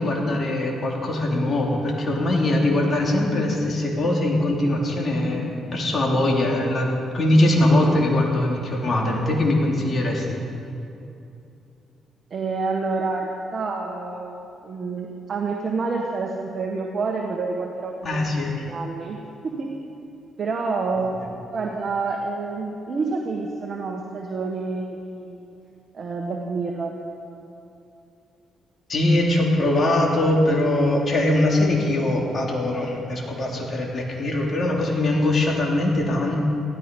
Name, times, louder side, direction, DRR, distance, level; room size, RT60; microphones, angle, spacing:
voice 1, 0.0-10.4 18.0-18.6 21.2-21.3 28.9-36.4, left 1 dB, 45° left, -1 dB, 3.3 m, -22 dB
voice 2, 12.3-18.2 18.7-19.7 20.4-21.1 21.5-25.5 25.9-26.9, right 4 dB, 45° right, 0 dB, 1.5 m, -28 dB
16.0 x 13.5 x 5.4 m, 2.7 s
cardioid pair, 90°, 0 cm